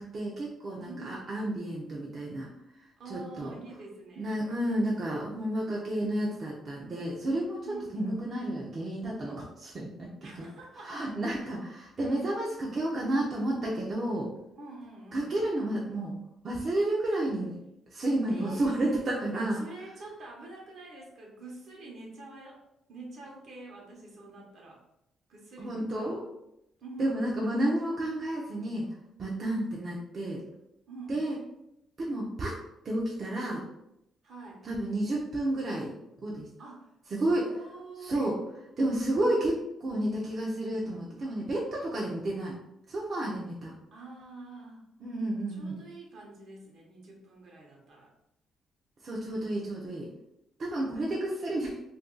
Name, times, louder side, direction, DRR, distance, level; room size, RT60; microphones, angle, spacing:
voice 1, 0.0-2.5 3.1-3.5 4.2-7.7 7.9-10.1 10.8-14.3 15.1-16.2 16.4-17.6 17.9-19.6 25.6-26.3 27.0-28.9 29.2-30.4 31.1-31.4 32.0-32.5 32.8-33.6 34.6-35.9 36.2-36.5 37.1-37.5 38.0-38.3 38.8-42.5 42.9-43.7 45.0-45.7 49.0-50.1 50.6-51.8, right 1 dB, 45° right, -4 dB, 0.6 m, -31 dB
voice 2, 0.8-1.2 3.0-4.3 7.6-8.0 10.2-11.0 11.4-11.5 14.6-15.3 18.3-19.0 19.5-22.6 22.9-24.8 25.3-26.2 26.8-27.2 30.9-31.2 34.2-34.6 36.6-38.3 43.9-44.8 45.5-48.1, right 2 dB, 65° right, -1 dB, 1.0 m, -46 dB
2.6 x 2.3 x 3.7 m, 0.83 s
cardioid pair, 90°, 0 cm